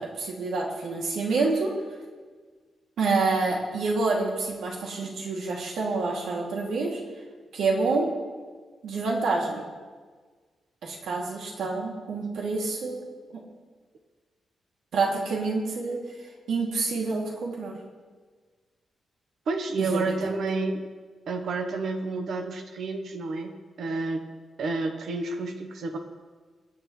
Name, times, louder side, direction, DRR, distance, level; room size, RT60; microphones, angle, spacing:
voice 1, 0.0-1.7 3.0-7.0 7.5-8.0 8.8-9.6 10.8-13.1 14.9-16.0 16.5-17.7 19.8-20.1, right 3 dB, 80° right, -2 dB, 2.5 m, -27 dB
voice 2, 19.5-20.8 21.3-23.5 23.8-24.2 24.6-26.0, right 3 dB, 60° right, 6 dB, 1.0 m, -29 dB
21.5 x 9.1 x 3.2 m, 1.5 s
wide cardioid pair, 160°, 0 cm